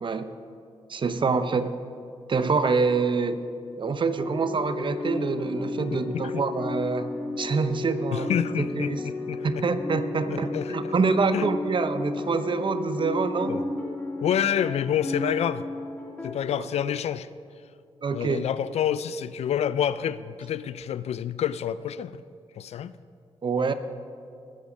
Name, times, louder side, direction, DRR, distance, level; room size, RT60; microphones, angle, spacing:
voice 1, 0.0-0.4 0.9-1.8 2.3-3.5 3.8-7.1 7.4-8.3 8.6-9.0 9.4-13.6 16.6-16.7 18.0-18.4 23.4-23.7, right 4 dB, 45° right, 0.8 m, -26 dB
sound 1, 4.1-16.3, left 3 dB, 15° left, 2.3 m, -33 dB
voice 2, 5.9-6.4 8.1-9.6 10.3-10.9 11.3-11.5 13.5-13.6 14.2-15.7 16.2-17.3 18.1-22.2 22.6-22.9, left 9 dB, 70° left, 0.4 m, -28 dB
18.5 x 7.1 x 5.2 m
cardioid pair, 75°, 11 cm